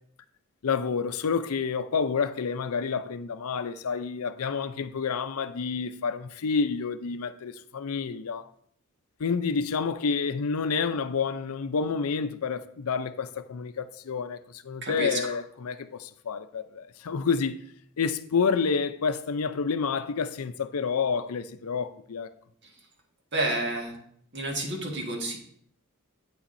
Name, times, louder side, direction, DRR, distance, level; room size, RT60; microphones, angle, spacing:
voice 1, 0.6-8.5 9.2-17.6 18.0-22.3, left 5 dB, 75° left, 0.5 m, -29 dB
voice 2, 14.8-15.2 22.6-22.7 23.3-23.9 24.3-25.4, right 2 dB, 50° right, 1.5 m, -30 dB
8.4 x 7.0 x 2.6 m
head